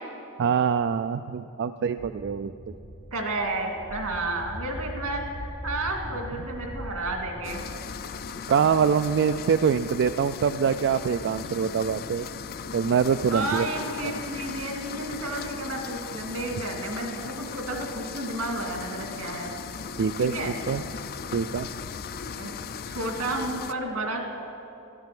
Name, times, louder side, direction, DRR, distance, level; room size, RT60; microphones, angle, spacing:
voice 1, 0.4-2.5 8.5-12.3 12.7-13.7 14.0-14.1 20.0-20.3 20.7-20.8 21.3-21.7, right 7 dB, 55° right, 10 dB, 0.3 m, -24 dB
sound 1, 2.0-9.1, equal, 70° left, 2.8 m, -40 dB
voice 2, 3.1-7.6 13.3-19.5 20.2-20.5 22.4-22.5 22.8-24.3, right 2 dB, 80° right, 2 dB, 2.2 m, -31 dB
sound 2, 7.4-23.7, left 6 dB, 45° left, 0.5 m, -37 dB
14.0 x 11.5 x 7.6 m, 3.0 s
head